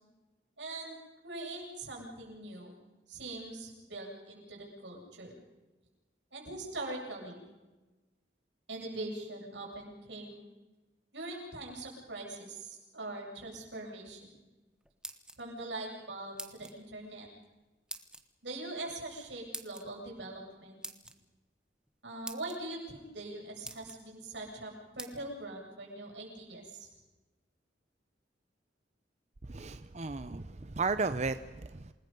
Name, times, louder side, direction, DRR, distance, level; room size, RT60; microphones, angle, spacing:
voice 1, 0.6-1.0 1.2-2.8 3.1-5.3 6.3-7.5 8.7-10.4 11.1-14.4 15.4-17.3 18.4-20.8 22.0-26.9, right 2 dB, 90° right, -1 dB, 7.9 m, -42 dB
sound 1, 14.8-15.7 16.4-16.8 17.9-18.2 19.5-19.8 20.8-21.2 21.9-22.0 22.2-22.6 23.2-23.3 23.6-24.0 25.0-25.1, right 2 dB, 5° right, 1.3 m, -44 dB
voice 2, 29.4-31.9, right 3 dB, 40° right, 11 dB, 0.6 m, -34 dB
28.5 x 20.0 x 5.4 m, 1.2 s
head